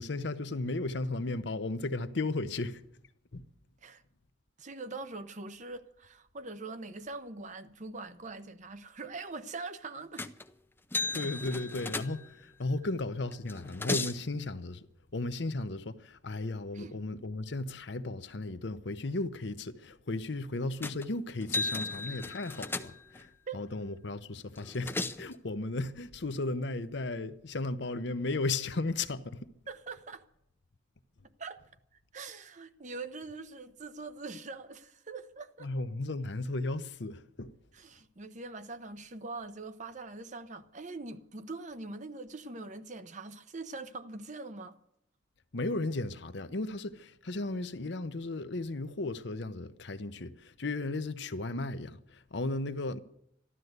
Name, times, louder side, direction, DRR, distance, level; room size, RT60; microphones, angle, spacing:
voice 1, 0.0-2.8 3.3-3.4 11.1-14.9 15.1-29.4 35.6-37.5 45.5-53.0, left 2 dB, 60° left, 0.8 m, -35 dB
voice 2, 4.6-10.3 16.7-16.9 23.2-23.6 29.7-30.2 31.4-31.6 32.1-35.7 37.7-44.8, right 3 dB, 40° right, 0.8 m, -43 dB
sound 1, 10.2-10.5 10.9-12.5 13.3-14.2 20.8-21.1 21.4-23.3 24.6-25.3, left 3 dB, 10° left, 0.6 m, -35 dB
13.5 x 12.5 x 8.0 m
head